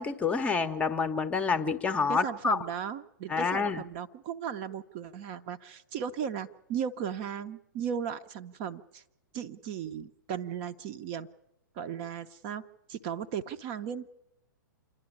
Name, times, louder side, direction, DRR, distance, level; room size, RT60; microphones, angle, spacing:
voice 1, 0.0-2.6 3.3-3.8, left 5 dB, 10° left, 10 dB, 0.8 m, -28 dB
voice 2, 2.1-9.0 9.3-11.3 11.8-12.6 12.9-14.1, right 8 dB, 35° right, 9 dB, 0.7 m, -36 dB
27.5 x 11.0 x 9.7 m, 0.87 s
figure-of-eight pair, 110°, 11 cm